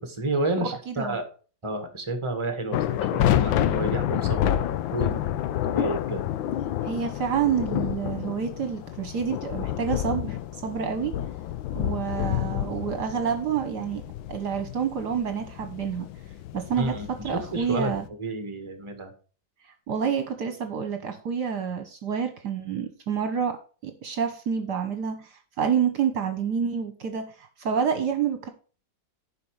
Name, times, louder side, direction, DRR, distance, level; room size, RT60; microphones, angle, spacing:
voice 1, 0.0-1.2 1.6-5.4 5.6-6.3 16.8-17.9 18.2-19.1, right 2 dB, 15° right, 7 dB, 1.9 m, -31 dB
voice 2, 0.9-1.2 6.8-11.2 11.7-14.0 14.3-16.1 16.5-18.0 19.9-28.5, right 7 dB, 60° right, 7 dB, 1.7 m, -28 dB
sound 1, 2.7-18.1, left 12 dB, 85° left, 1.4 m, -29 dB
11.0 x 5.6 x 4.8 m, 0.37 s
omnidirectional pair, 2.1 m